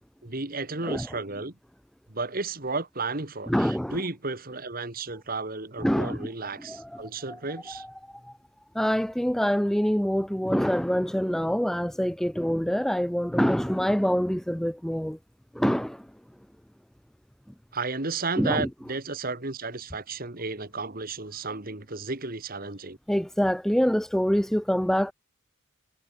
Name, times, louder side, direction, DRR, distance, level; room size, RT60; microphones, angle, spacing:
voice 1, 0.2-1.6 2.1-7.9 17.7-23.0, right 3 dB, 45° right, 2.1 m, -33 dB
voice 2, 3.5-4.0 5.8-6.3 6.7-7.0 7.7-8.3 8.7-15.2 15.5-16.1 18.4-18.7 23.1-25.1, equal, ahead, 0.4 m, -25 dB
head